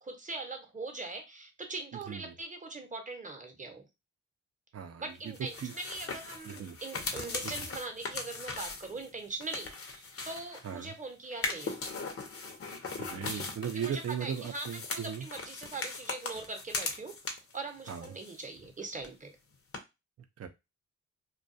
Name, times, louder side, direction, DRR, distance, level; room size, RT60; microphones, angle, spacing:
voice 1, 0.0-3.8 5.0-11.7 13.7-17.1 17.5-19.3, right 3 dB, 25° right, 5 dB, 0.8 m, -41 dB
voice 2, 4.7-5.1 5.6-5.7 6.4-6.8 7.4-7.5 10.6-11.0 13.0-15.3 17.9-18.1 20.4-20.5, right 8 dB, 50° right, 8 dB, 0.5 m, -37 dB
sound 1, 5.3-10.8 11.3-17.6 17.9-18.7 19.0-19.1 19.7-19.8, left 3 dB, 45° left, 0.7 m, -39 dB
2.2 x 2.2 x 2.6 m, 0.23 s
cardioid pair, 65°, 31 cm